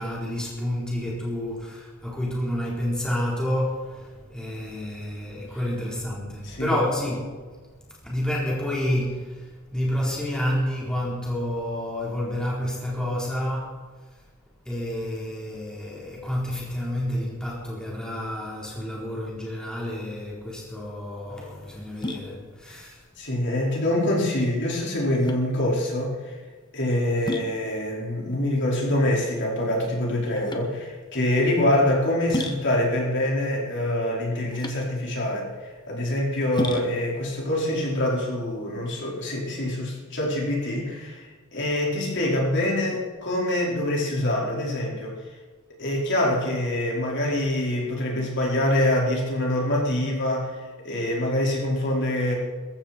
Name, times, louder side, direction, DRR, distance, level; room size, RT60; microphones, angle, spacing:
voice 1, 0.0-7.2 7.8-13.8 14.6-23.0, equal, 5° left, -5 dB, 4.0 m, -29 dB
voice 2, 6.4-6.8 22.7-22.8 23.2-26.4 26.7-45.1 45.8-52.3, left 1 dB, 55° left, -4 dB, 4.9 m, -25 dB
sound 1, 20.4-39.0, left 1 dB, 20° left, 1.3 m, -37 dB
21.0 x 15.0 x 4.5 m, 1.4 s
head